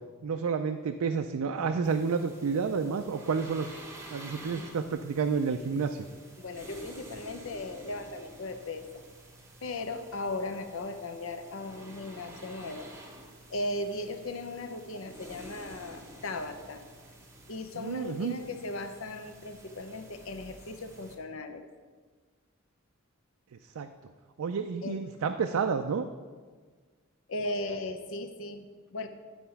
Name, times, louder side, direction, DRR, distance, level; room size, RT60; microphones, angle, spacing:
voice 1, 0.2-3.7 4.1-6.0 17.7-18.4 23.8-23.9 24.4-26.0, right 5 dB, 85° right, 6 dB, 0.4 m, -30 dB
sound 1, 1.8-21.2, right 1 dB, 15° right, 0.9 m, -50 dB
voice 2, 6.4-8.8 9.6-12.9 13.5-16.8 17.5-21.6 24.8-25.0 27.3-29.1, left 2 dB, 65° left, 8 dB, 0.7 m, -37 dB
10.0 x 4.3 x 5.7 m, 1.5 s
head